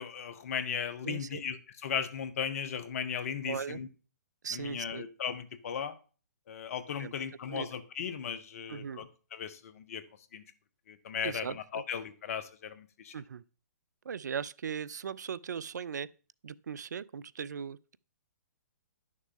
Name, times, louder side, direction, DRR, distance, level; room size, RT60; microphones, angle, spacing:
voice 1, 0.0-3.9 4.5-5.9 6.5-10.0 10.3-10.4 10.9-13.1, left 7 dB, 55° left, 1.0 m, -37 dB
voice 2, 1.0-1.4 3.5-3.8 4.4-5.0 7.0-7.1 7.5-7.7 8.7-9.0 11.2-11.8 13.1-13.4 14.0-16.1 16.4-18.0, right 7 dB, 75° right, 0.4 m, -38 dB
11.0 x 6.4 x 3.6 m
hypercardioid pair, 130°, 10 cm